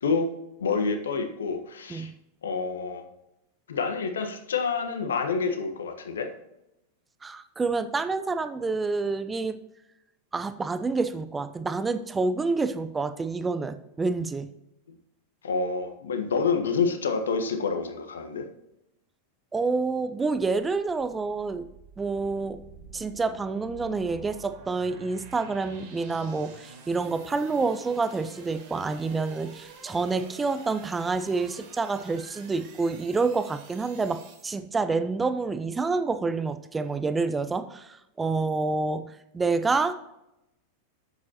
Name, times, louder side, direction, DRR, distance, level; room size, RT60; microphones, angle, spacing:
voice 1, 0.6-2.1 2.4-3.0 3.7-6.3 15.4-18.5, left 5 dB, 65° left, 6 dB, 1.3 m, -28 dB
voice 2, 7.2-9.6 10.3-14.5 19.5-21.7 22.0-22.6 22.9-39.1 39.3-40.0, right 4 dB, 15° right, 11 dB, 0.7 m, -28 dB
sound 1, 20.4-34.5, right 4 dB, 45° right, 2.8 m, -49 dB
11.5 x 8.4 x 2.9 m, 0.87 s
figure-of-eight pair, 90°, 0 cm